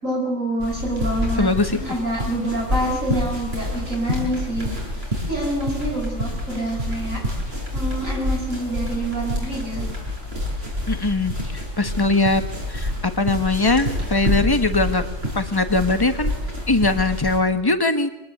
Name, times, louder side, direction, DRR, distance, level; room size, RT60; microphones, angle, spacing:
voice 1, 0.0-4.8 5.3-7.2 7.7-9.9, right 1 dB, 80° right, 0 dB, 6.9 m, -27 dB
sound 1, 0.6-17.4, left 1 dB, 50° right, 6.8 m, -28 dB
voice 2, 1.4-1.8 10.9-12.4 12.7-15.0 15.3-16.3 16.7-18.1, left 3 dB, 20° left, 8 dB, 1.5 m, -21 dB
23.5 x 19.0 x 8.0 m, 0.83 s
omnidirectional pair, 1.4 m